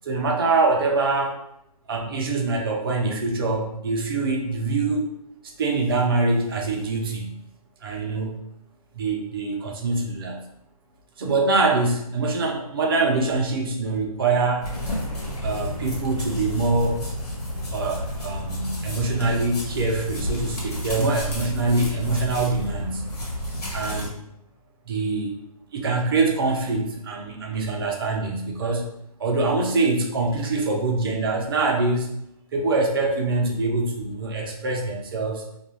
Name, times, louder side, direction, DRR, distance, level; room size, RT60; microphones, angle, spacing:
voice 1, 0.0-1.4 1.9-5.0 5.6-7.3 7.8-8.4 8.9-10.4 11.2-14.9 15.4-17.1 17.7-23.1 23.7-24.2 24.9-25.3 25.7-28.9 29.2-32.1 32.5-35.4, right 3 dB, 35° right, 0 dB, 0.5 m, -24 dB
sound 1, 14.6-24.1, left 1 dB, 80° left, 1.2 m, -31 dB
2.3 x 2.3 x 3.0 m, 0.77 s
hypercardioid pair, 155°, 19 cm